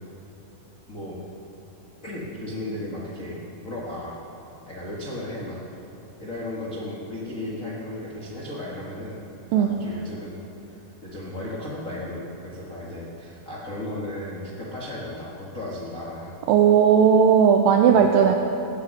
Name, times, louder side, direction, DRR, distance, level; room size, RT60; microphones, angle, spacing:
voice 1, 2.0-4.2 4.7-5.6 6.2-9.2 9.5-10.4 10.7-10.8 11.0-16.4 17.9-18.3, left 1 dB, 75° left, -4 dB, 0.7 m, -35 dB
voice 2, 16.5-18.3, right 7 dB, 85° right, 4 dB, 2.0 m, -16 dB
17.5 x 8.4 x 6.4 m, 2.8 s
omnidirectional pair, 4.7 m